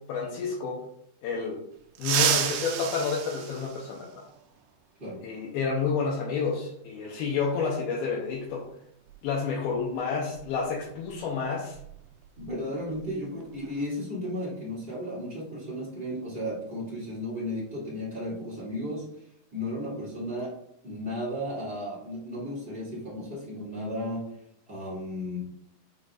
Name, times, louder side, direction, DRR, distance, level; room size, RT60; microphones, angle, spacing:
voice 1, 0.1-0.8 1.2-1.6 2.0-4.1 5.2-8.7 9.2-11.8, left 5 dB, 70° left, -4 dB, 2.5 m, -29 dB
sound 1, 2.0-4.4 6.0-6.1 7.3-7.4 9.1-9.2 9.6-9.8 10.3-12.5 12.7-13.0 13.4-13.8, right 9 dB, 80° right, 2.2 m, -31 dB
voice 2, 12.4-19.3 19.5-20.6 20.8-24.3 24.7-25.4, left 1 dB, 20° right, -6 dB, 1.8 m, -34 dB
9.6 x 5.1 x 2.5 m, 0.73 s
omnidirectional pair, 5.1 m